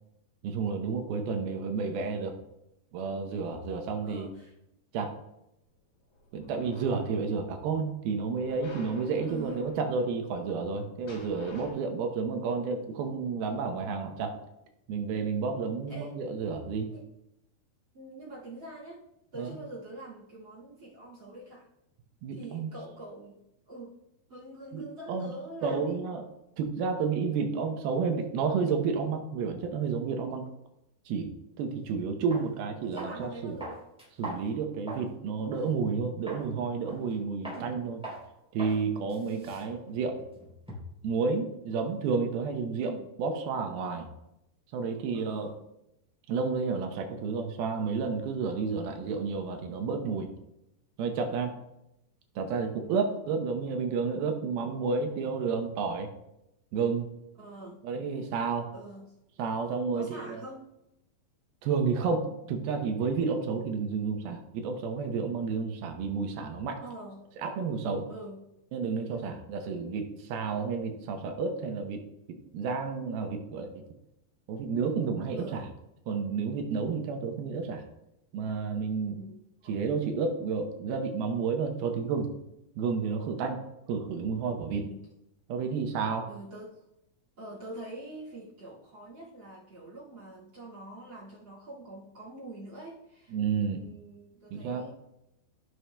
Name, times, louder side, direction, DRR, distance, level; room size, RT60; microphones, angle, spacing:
voice 1, 0.4-2.3 2.9-4.3 4.9-5.1 6.3-14.4 14.9-16.9 19.4-19.5 22.2-22.7 24.7-25.3 25.6-26.3 26.6-30.5 31.1-33.6 34.2-38.0 38.5-40.2 41.0-44.1 44.7-45.5 46.3-50.3 51.0-51.6 52.4-56.1 56.7-57.1 57.8-58.7 59.4-60.4 61.6-66.8 67.4-68.1 68.7-73.8 74.5-75.7 76.1-77.8 78.3-79.2 79.7-82.3 82.8-83.6 83.9-84.9 85.5-86.3 93.3-93.8 94.5-94.9, right 5 dB, 75° right, 4 dB, 2.6 m, -31 dB
voice 2, 4.0-4.5 9.3-9.7 15.9-16.1 16.9-17.1 17.9-19.0 19.3-21.7 22.3-24.0 24.3-26.0 32.8-33.8 35.5-35.8 37.4-37.7 39.2-39.5 42.8-43.1 45.1-45.6 52.7-53.0 57.4-57.8 58.7-59.1 59.9-60.7 66.8-67.2 68.1-68.4 69.1-69.5 75.3-75.6 79.1-79.4 79.6-79.8 84.8-85.0 86.3-86.9 87.4-94.9, right 2 dB, 35° right, -4 dB, 2.3 m, -45 dB
sound 1, 6.0-7.5 8.3-11.7, left 2 dB, 70° left, 4.1 m, -51 dB
sound 2, 31.7-31.8 32.3-32.5 33.0-33.2 33.6-35.1 35.5-35.6 36.3-36.5 36.9-37.1 37.4-37.6 38.0-38.2 38.6-38.8 39.1-41.0, right 1 dB, ahead, 2.5 m, -42 dB
15.5 x 6.3 x 2.2 m, 0.86 s
omnidirectional pair, 4.6 m